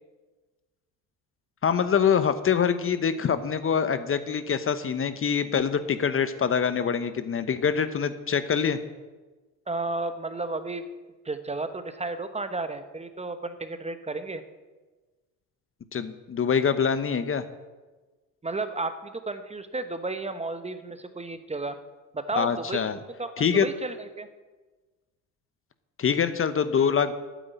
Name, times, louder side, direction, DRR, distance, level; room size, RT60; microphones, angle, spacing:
voice 1, 1.6-8.8 15.9-17.4 22.4-23.0 23.4-23.7 26.0-27.1, left 7 dB, 35° left, 12 dB, 0.9 m, -25 dB
voice 2, 9.7-10.8 11.2-14.4 18.4-21.8 22.1-22.8 23.2-24.3, right 3 dB, 15° right, 10 dB, 1.0 m, -33 dB
9.3 x 8.0 x 9.2 m, 1.3 s
supercardioid pair, 80°, 39 cm